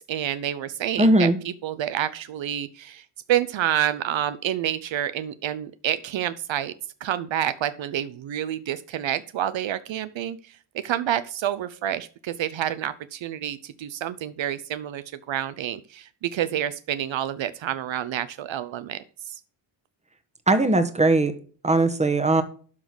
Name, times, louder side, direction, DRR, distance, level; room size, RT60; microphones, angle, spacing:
voice 1, 0.1-1.3 1.6-3.0 3.3-6.7 7.0-10.5 10.8-19.4, right 11 dB, 70° right, 14 dB, 0.7 m, -28 dB
voice 2, 1.0-1.4 20.5-21.3 21.6-22.4, right 2 dB, 15° right, 9 dB, 1.4 m, -19 dB
12.0 x 4.1 x 6.0 m, 0.42 s
cardioid pair, 95°, 48 cm